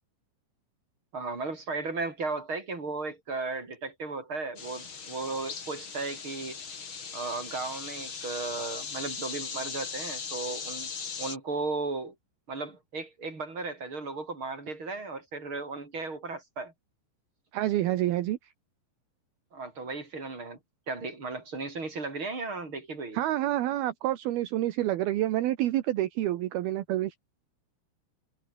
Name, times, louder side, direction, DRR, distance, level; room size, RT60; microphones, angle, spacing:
voice 1, 1.1-6.6 7.1-10.9 11.2-12.2 12.5-16.7 19.5-20.6 20.9-23.2, right 3 dB, 30° right, 6.9 m, -35 dB
sound 1, 4.6-11.4, left 5 dB, 35° left, 3.0 m, -39 dB
voice 2, 17.5-18.4 23.1-27.1, right 14 dB, 70° right, 3.0 m, -28 dB
omnidirectional pair, 4.9 m